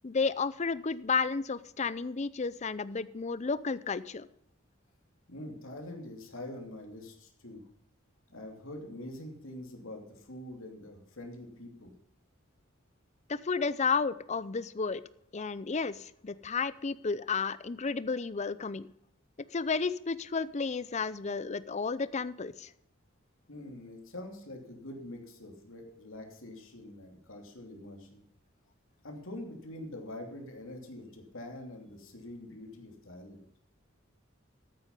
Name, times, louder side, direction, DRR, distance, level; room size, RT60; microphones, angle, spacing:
voice 1, 0.0-4.3 13.3-15.0 15.3-18.9 19.5-22.7, left 4 dB, 35° left, 16 dB, 0.5 m, -32 dB
voice 2, 5.3-7.6 8.3-11.9 23.5-28.2 29.0-33.4, left 1 dB, 70° left, 2 dB, 2.9 m, -45 dB
13.5 x 9.1 x 5.4 m, 0.73 s
head